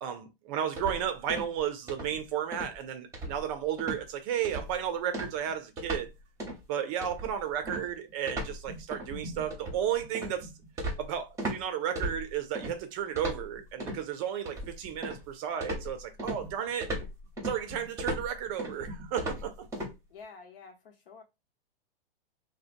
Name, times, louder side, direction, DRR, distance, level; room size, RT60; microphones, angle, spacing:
voice 1, 0.0-6.1 6.7-10.5 11.0-16.9 17.4-19.6, right 9 dB, 35° right, 0.5 m, -33 dB
sound 1, 0.8-1.6 1.9-2.2 2.5-2.8 3.1-3.5 3.8-4.0 4.4-4.8 5.1-6.1 6.4-6.6 7.0-11.6 12.0-12.7 13.2-14.0 14.5-15.3 15.6-19.9, right 1 dB, 10° right, 0.8 m, -37 dB
voice 2, 20.1-21.2, left 5 dB, 65° left, 1.0 m, -49 dB
2.8 x 2.1 x 2.5 m
hypercardioid pair, 130°, 30 cm